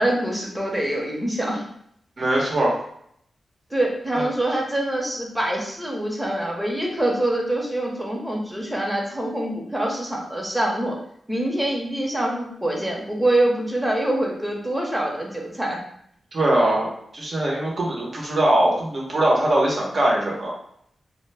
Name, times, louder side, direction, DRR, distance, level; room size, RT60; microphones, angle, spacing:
voice 1, 0.0-1.7 3.7-11.0 11.3-15.8, right 1 dB, 10° right, -1 dB, 0.8 m, -25 dB
voice 2, 2.2-2.8 16.3-16.9 17.1-20.5, right 1 dB, 55° right, -3 dB, 0.9 m, -21 dB
2.1 x 2.1 x 3.3 m, 0.70 s
cardioid pair, 50°, 0 cm